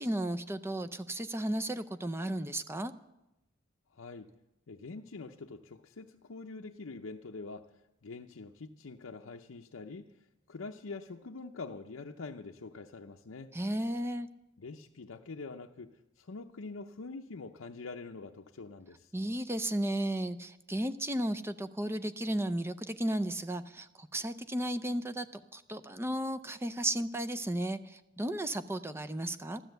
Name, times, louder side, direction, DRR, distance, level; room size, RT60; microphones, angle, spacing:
voice 1, 0.0-2.9 13.5-14.3 19.1-25.3 25.5-29.6, right 1 dB, 10° right, 10 dB, 0.5 m, -34 dB
voice 2, 3.9-4.3 4.7-13.5 14.6-15.9 16.2-19.1, left 3 dB, 75° left, 3 dB, 0.7 m, -45 dB
14.0 x 12.5 x 7.9 m, 0.93 s
head